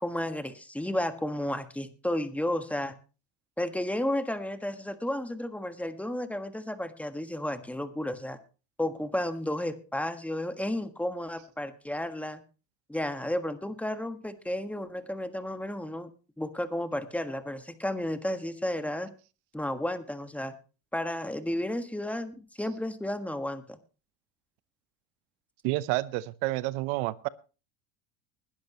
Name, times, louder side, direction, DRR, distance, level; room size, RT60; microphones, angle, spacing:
voice 1, 0.0-3.0 3.6-8.4 8.8-12.4 12.9-16.1 16.4-19.1 19.5-20.5 20.9-23.8, left 1 dB, 5° left, 8 dB, 1.5 m, -32 dB
voice 2, 25.6-27.3, right 18 dB, 75° right, 17 dB, 0.8 m, -29 dB
20.5 x 12.0 x 3.0 m, 0.35 s
supercardioid pair, 115°, 35 cm